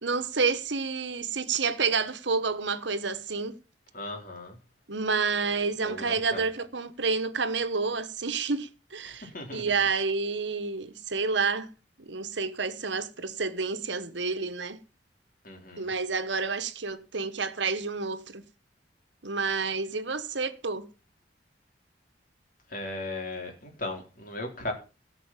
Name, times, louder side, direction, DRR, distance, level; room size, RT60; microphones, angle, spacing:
voice 1, 0.0-3.5 4.9-11.7 12.0-14.8 15.8-18.5 19.2-20.9, right 4 dB, 70° right, 1.3 m, -29 dB
voice 2, 3.9-4.6 5.8-6.5 9.1-9.6 15.4-15.9 22.7-24.7, left 2 dB, 45° left, 4.0 m, -37 dB
17.0 x 6.1 x 7.4 m
head